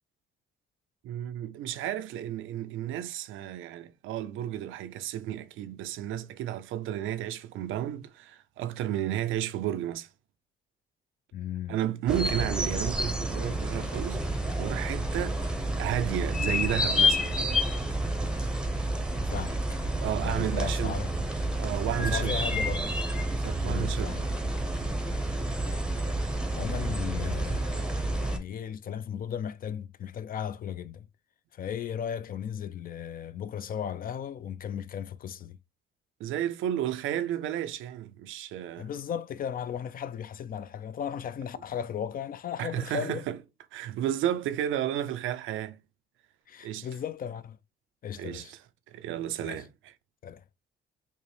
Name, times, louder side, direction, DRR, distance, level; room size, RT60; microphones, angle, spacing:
voice 1, 1.0-10.1 11.7-17.4 20.0-21.0 21.6-22.4 23.3-24.2 36.2-38.9 42.6-43.4 43.7-45.8 46.6-46.9 48.2-48.6 48.9-49.7, right 11 dB, 85° right, 0.4 m, -32 dB
voice 2, 11.3-11.8 12.1-12.4 19.2-19.6 20.2-21.1 22.0-22.9 23.6-24.3 25.7-25.8 26.5-31.1 31.5-35.6 38.8-43.2 46.5-47.6 48.0-48.5 49.4-49.6 50.2-50.4, left 8 dB, 45° left, 0.4 m, -36 dB
sound 1, 12.1-28.4, equal, 5° right, 0.7 m, -29 dB
5.3 x 2.0 x 3.1 m
cardioid pair, 90°, 20 cm